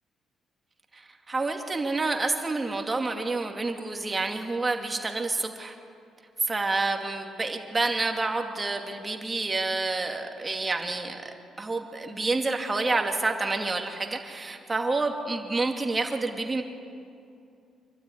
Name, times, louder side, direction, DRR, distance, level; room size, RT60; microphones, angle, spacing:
voice 1, 0.9-5.8 6.4-11.2 11.6-16.6, right 3 dB, 25° right, 4 dB, 2.5 m, -28 dB
26.5 x 12.5 x 9.9 m, 2.6 s
cardioid pair, 90°, 0 cm